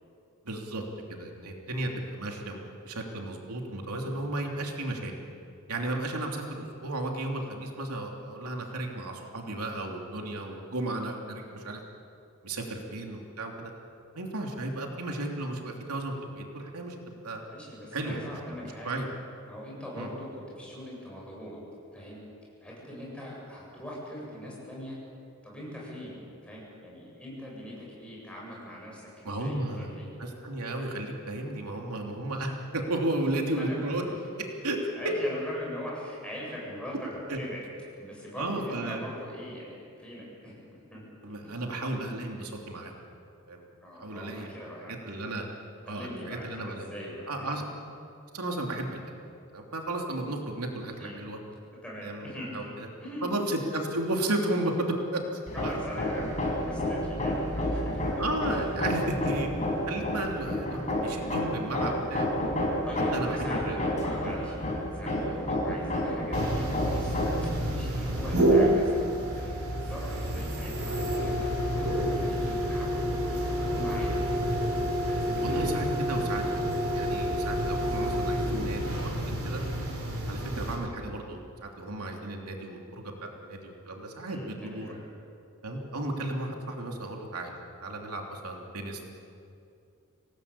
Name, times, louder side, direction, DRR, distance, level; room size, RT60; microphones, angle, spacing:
voice 1, 0.4-0.8 1.1-5.1 5.7-11.8 12.4-13.7 14.1-17.0 17.2-17.4 17.9-18.3 18.6-19.1 19.9-20.1 29.2-29.9 30.2-34.0 34.6-34.9 37.3-37.4 38.4-39.0 41.2-42.9 43.5-43.6 44.0-44.5 44.9-45.4 45.9-46.9 47.3-47.6 48.3-49.0 49.5-51.4 52.0-52.9 53.2-55.2 55.6-55.7 58.2-59.5 59.9-62.4 63.1-63.8 75.4-76.4 76.9-79.6 80.3-83.1 83.4-84.9 85.6-89.1, right 2 dB, 90° right, 1 dB, 3.0 m, -34 dB
voice 2, 17.5-19.0 19.5-21.6 21.9-22.2 22.6-25.0 25.4-30.1 33.5-33.8 34.1-34.2 35.0-37.6 38.0-40.5 40.9-41.0 41.4-41.6 43.8-45.0 45.9-47.5 51.0-51.2 51.8-52.7 53.0-53.4 55.5-58.1 58.8-59.0 62.9-67.2 67.7-69.0 69.3-73.1 73.4-74.8 75.0-75.6 84.3-85.0, equal, 5° left, -4 dB, 8.0 m, -41 dB
Hammer, 55.5-67.5, left 1 dB, 35° left, 4.9 m, -30 dB
sound 1, 66.3-80.8, equal, 65° right, 5.1 m, -28 dB
26.5 x 18.0 x 8.6 m, 2.5 s
head